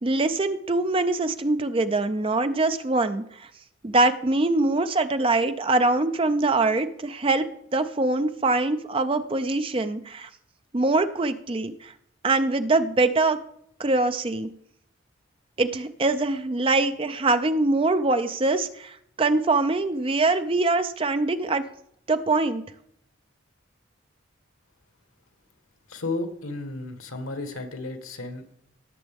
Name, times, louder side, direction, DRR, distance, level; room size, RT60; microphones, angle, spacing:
voice 1, 0.0-3.5 3.8-7.5 7.7-10.3 10.7-11.9 12.2-13.4 13.8-14.5 15.6-21.6 22.1-22.6, right 2 dB, 25° right, 10 dB, 0.5 m, -23 dB
voice 2, 25.9-28.5, left 2 dB, 90° left, 8 dB, 1.4 m, -33 dB
17.5 x 7.1 x 3.5 m, 0.71 s
head